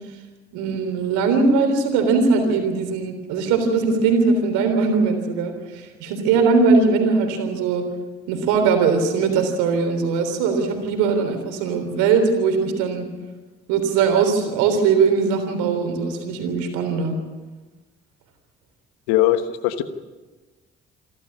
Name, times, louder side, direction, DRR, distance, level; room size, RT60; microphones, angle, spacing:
voice 1, 0.5-7.8 8.3-13.1 13.7-17.2, right 4 dB, 75° right, 6 dB, 3.6 m, -20 dB
voice 2, 19.1-19.8, left 13 dB, 80° left, 11 dB, 1.3 m, -20 dB
27.5 x 13.0 x 8.6 m, 1.2 s
hypercardioid pair, 45°, 30 cm